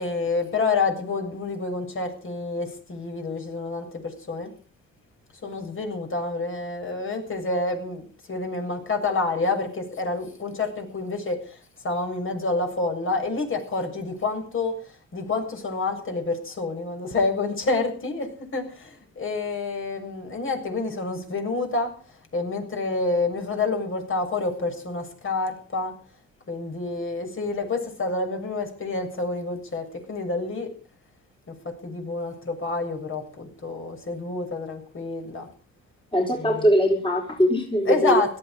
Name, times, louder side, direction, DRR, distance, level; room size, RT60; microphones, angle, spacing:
voice 1, 0.0-4.5 5.4-11.6 11.8-14.7 15.1-21.9 22.3-25.9 26.5-30.7 31.6-35.5 36.3-36.7 37.9-38.4, left 3 dB, 45° left, 4 dB, 7.2 m, -28 dB
voice 2, 36.1-38.2, equal, 15° left, 1 dB, 4.6 m, -21 dB
17.0 x 13.5 x 5.3 m, 0.42 s
cardioid pair, 90°, 30 cm